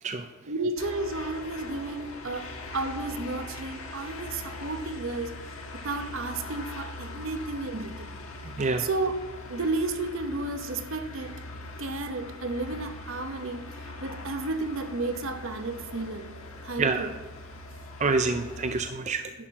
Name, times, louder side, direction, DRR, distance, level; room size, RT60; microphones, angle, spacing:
voice 1, 0.4-5.4 5.7-8.1 8.8-9.1 9.5-11.4 11.8-13.7 14.0-16.3 16.6-17.1, right 2 dB, 70° right, 8 dB, 0.9 m, -32 dB
sound 1, 0.8-18.8, left 2 dB, 80° left, 1.6 m, -41 dB
voice 2, 8.4-8.9 16.8-17.1 18.0-19.3, right 3 dB, 35° right, 7 dB, 0.4 m, -27 dB
11.0 x 5.9 x 5.9 m, 1.2 s
head